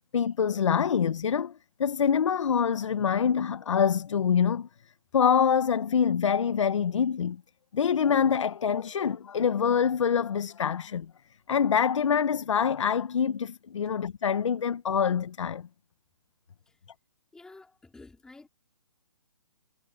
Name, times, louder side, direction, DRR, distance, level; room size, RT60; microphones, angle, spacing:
voice 1, 0.1-4.7 5.1-7.4 7.7-11.1 11.5-15.7, left 7 dB, 65° left, 1.1 m, -25 dB
voice 2, 17.3-18.5, left 3 dB, 5° left, 3.2 m, -51 dB
hypercardioid pair, 155°, 17 cm